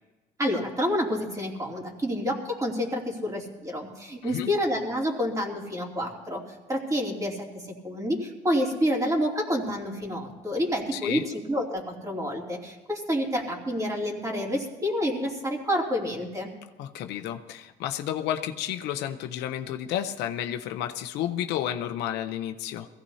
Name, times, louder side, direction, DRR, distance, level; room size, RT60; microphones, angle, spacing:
voice 1, 0.4-6.4 6.7-16.5, equal, 20° right, -1 dB, 2.8 m, -28 dB
voice 2, 10.9-11.2 16.8-22.9, left 11 dB, 85° left, 8 dB, 0.8 m, -31 dB
21.5 x 16.0 x 2.8 m, 1.2 s
cardioid pair, 110°, 17 cm